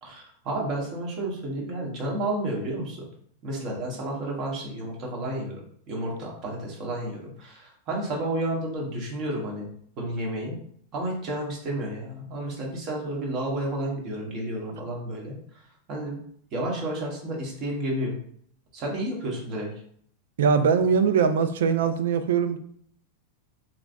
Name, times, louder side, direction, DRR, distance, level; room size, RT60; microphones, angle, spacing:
voice 1, 0.0-3.0 3.4-5.6 5.9-9.7 10.0-10.6 10.9-16.2 16.5-18.2 18.7-19.7, right 1 dB, 45° right, -1 dB, 1.1 m, -31 dB
voice 2, 20.4-22.6, right 6 dB, 80° right, 10 dB, 0.3 m, -21 dB
3.0 x 2.6 x 2.5 m, 0.62 s
hypercardioid pair, 120°, 0 cm